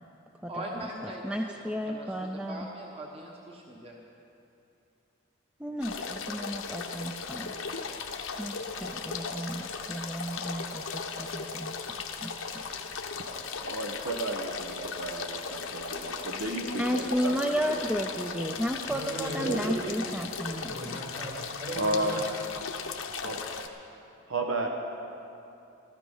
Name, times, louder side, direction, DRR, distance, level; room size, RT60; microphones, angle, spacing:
voice 1, 0.5-2.1 2.5-3.9 17.2-17.5 17.7-17.9, right 1 dB, 25° right, -2 dB, 1.2 m, -41 dB
voice 2, 1.0-2.7 5.6-7.5 8.4-12.3 16.8-21.0, equal, 5° right, 4 dB, 0.4 m, -33 dB
sound 1, 5.8-23.7, left 5 dB, 85° left, 1.0 m, -37 dB
voice 3, 13.6-17.3 17.7-17.8 19.4-19.6 21.8-22.2 23.2-23.4 24.3-24.7, right 2 dB, 85° right, 2 dB, 1.0 m, -32 dB
voice 4, 18.9-20.0 20.6-21.3 21.6-22.2, right 1 dB, 55° right, -2 dB, 4.0 m, -37 dB
14.5 x 14.0 x 5.5 m, 2.7 s
head